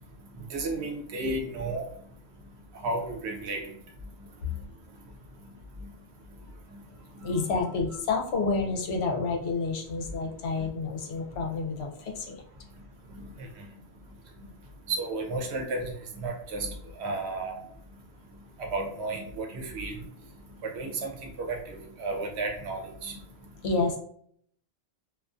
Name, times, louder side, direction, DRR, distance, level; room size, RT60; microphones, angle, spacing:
voice 1, 0.5-1.8 2.8-3.6 7.2-7.3 13.1-13.3 14.9-16.7 17.0-17.6 18.6-19.9 20.6-21.1 21.4-23.2, right 2 dB, 80° right, 2 dB, 0.9 m, -32 dB
voice 2, 7.2-12.4 23.6-24.0, left 4 dB, 80° left, 1 dB, 0.8 m, -29 dB
2.4 x 2.3 x 2.3 m, 0.63 s
omnidirectional pair, 1.1 m